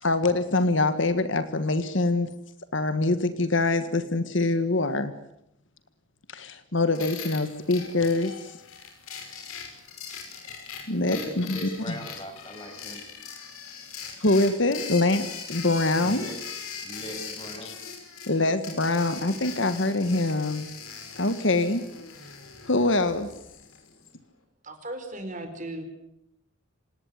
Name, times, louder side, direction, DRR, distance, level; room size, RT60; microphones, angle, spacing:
voice 1, 0.0-2.3 2.7-5.1 6.3-8.6 10.9-11.9 14.2-16.3 17.6-17.7 18.3-20.7 21.2-21.9 22.7-23.3, left 2 dB, 60° left, 11 dB, 1.6 m, -24 dB
sound 1, 6.9-23.9, left 6 dB, 85° left, 5.7 m, -41 dB
voice 2, 11.1-13.0 16.0-16.4 16.8-17.8, equal, 25° left, 4 dB, 7.0 m, -39 dB
voice 3, 24.6-25.8, right 1 dB, 35° right, 6 dB, 4.7 m, -36 dB
26.5 x 19.5 x 9.7 m, 0.80 s
head